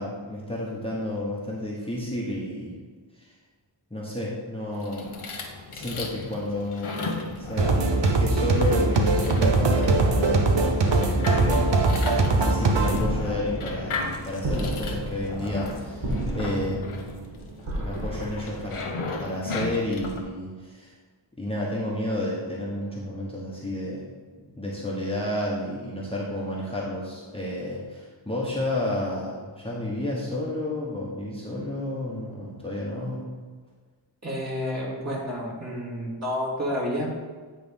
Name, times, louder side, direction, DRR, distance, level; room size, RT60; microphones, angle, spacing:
voice 1, 0.0-2.8 3.1-3.4 3.9-5.2 5.7-17.2 17.8-20.9 21.4-24.1 24.4-33.3, left 1 dB, 10° left, -5 dB, 1.3 m, -31 dB
sound 1, 4.7-20.2, left 3 dB, 85° left, 1.0 m, -36 dB
sound 2, 7.6-13.0, right 3 dB, 60° right, 0.9 m, -21 dB
sound 3, 9.8-19.3, right 1 dB, 90° right, 1.9 m, -33 dB
voice 2, 34.2-37.1, equal, 30° right, -6 dB, 2.4 m, -30 dB
9.2 x 3.5 x 5.3 m, 1.4 s
wide cardioid pair, 65°, 49 cm